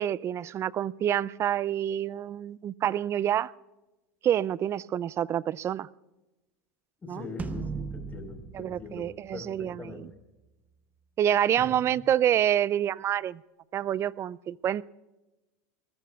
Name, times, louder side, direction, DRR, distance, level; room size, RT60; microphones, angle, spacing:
voice 1, 0.0-3.5 4.2-5.9 7.1-7.3 8.5-10.1 11.2-13.4 13.7-14.8, right 10 dB, 35° right, 22 dB, 0.4 m, -27 dB
voice 2, 7.0-9.1 9.3-10.0 11.6-11.9, left 4 dB, 20° left, 5 dB, 4.4 m, -42 dB
sound 1, 7.4-9.9, right 4 dB, 20° right, 1.0 m, -38 dB
24.5 x 20.0 x 2.4 m, 1.0 s
supercardioid pair, 110°, 8 cm